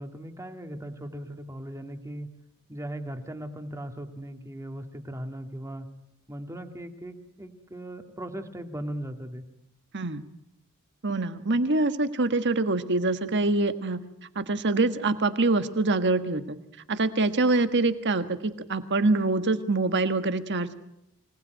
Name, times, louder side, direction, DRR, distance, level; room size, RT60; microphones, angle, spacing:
voice 1, 0.0-2.3 2.7-5.9 6.3-9.4, right 1 dB, 15° right, 7 dB, 1.9 m, -38 dB
voice 2, 11.0-14.0 14.3-16.6 16.9-20.8, right 2 dB, 50° right, 10 dB, 1.5 m, -25 dB
24.5 x 19.0 x 9.2 m, 0.82 s
head